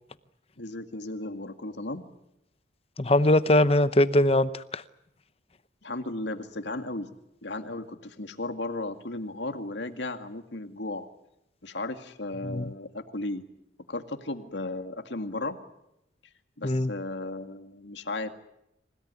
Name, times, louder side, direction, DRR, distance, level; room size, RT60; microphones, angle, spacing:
voice 1, 0.6-2.0 5.8-7.1 7.4-11.1 11.6-13.4 13.9-15.6 16.6-18.3, left 2 dB, 75° left, 7 dB, 2.1 m, -35 dB
voice 2, 3.0-4.8 12.4-12.7 16.6-16.9, left 1 dB, 30° left, 13 dB, 0.8 m, -22 dB
26.5 x 17.5 x 9.7 m, 0.84 s
head